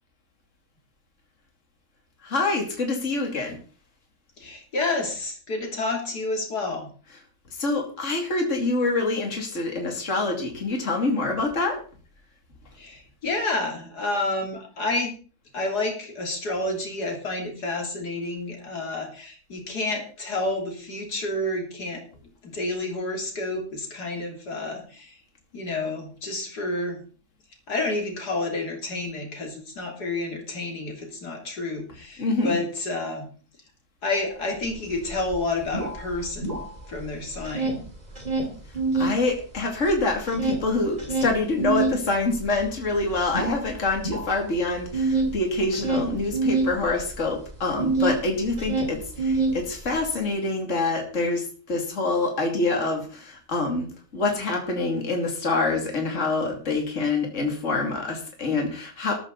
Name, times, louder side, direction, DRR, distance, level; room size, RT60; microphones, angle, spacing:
voice 1, 2.2-3.6 7.5-11.8 32.2-32.6 39.0-53.9 54.1-59.1, left 3 dB, 50° left, 2 dB, 3.0 m, -26 dB
voice 2, 4.4-6.9 12.8-15.1 15.5-22.0 22.4-25.2 25.5-27.0 27.7-33.3 34.0-37.8, left 2 dB, 85° left, 2 dB, 3.8 m, -29 dB
sound 1, 34.7-34.8 35.0-37.0 37.3-39.2 39.6-48.2 48.5-50.0, right 3 dB, 25° right, 2.8 m, -26 dB
13.5 x 13.5 x 4.1 m, 0.39 s
omnidirectional pair, 1.7 m